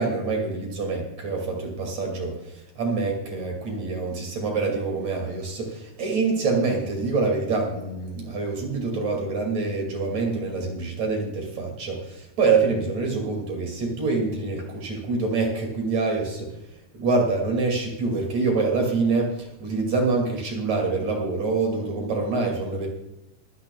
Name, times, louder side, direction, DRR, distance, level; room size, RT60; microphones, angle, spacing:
voice 1, 0.0-16.5 16.9-22.9, right 3 dB, 55° right, 0 dB, 3.7 m, -26 dB
26.0 x 10.0 x 2.4 m, 0.87 s
omnidirectional pair, 3.8 m